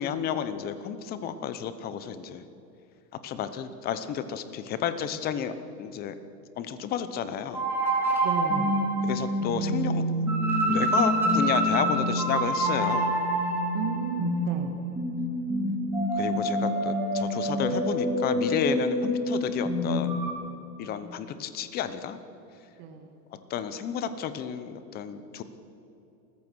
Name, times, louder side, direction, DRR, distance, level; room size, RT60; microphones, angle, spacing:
voice 1, 0.0-2.4 3.2-5.5 5.8-6.1 6.6-7.7 9.1-10.0 10.7-13.1 16.1-20.1 20.8-22.2 23.5-25.4, left 8 dB, 20° left, 12 dB, 0.8 m, -31 dB
sound 1, 7.5-20.3, right 1 dB, 5° right, 2.9 m, -26 dB
voice 2, 8.2-8.9 13.7-14.8 22.8-23.1, right 7 dB, 40° right, 4 dB, 1.8 m, -33 dB
29.5 x 14.5 x 6.3 m, 2.9 s
supercardioid pair, 155°, 49 cm